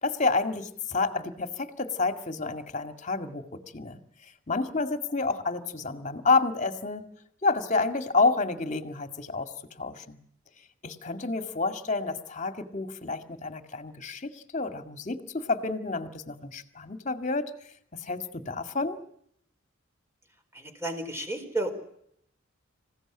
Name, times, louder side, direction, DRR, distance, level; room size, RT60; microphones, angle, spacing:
voice 1, 0.0-4.0 4.5-7.1 7.4-9.5 9.8-10.2 10.8-17.5 17.9-19.0, left 3 dB, 35° left, 8 dB, 2.1 m, -29 dB
voice 2, 20.5-21.7, right 2 dB, 10° right, 5 dB, 4.4 m, -32 dB
27.0 x 16.5 x 9.0 m, 0.71 s
head